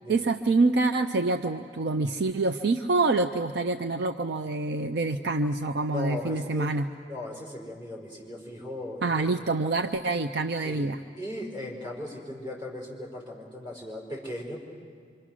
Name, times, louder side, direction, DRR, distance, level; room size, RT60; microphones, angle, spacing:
voice 1, 0.1-6.9 9.0-11.0, right 3 dB, 65° right, 7 dB, 0.6 m, -26 dB
voice 2, 5.9-6.7 7.1-9.5 10.6-10.9 11.2-14.6, left 1 dB, 25° right, -3 dB, 4.9 m, -38 dB
26.5 x 25.0 x 6.2 m, 2.2 s
head